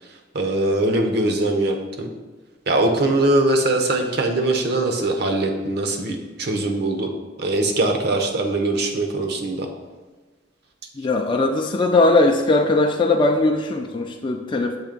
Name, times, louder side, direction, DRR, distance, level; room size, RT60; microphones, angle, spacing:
voice 1, 0.3-2.1 2.7-7.1 7.4-9.7, right 2 dB, 60° right, 3 dB, 0.8 m, -21 dB
voice 2, 10.9-14.8, left 2 dB, 25° left, 2 dB, 0.4 m, -19 dB
7.2 x 3.3 x 5.2 m, 1.3 s
head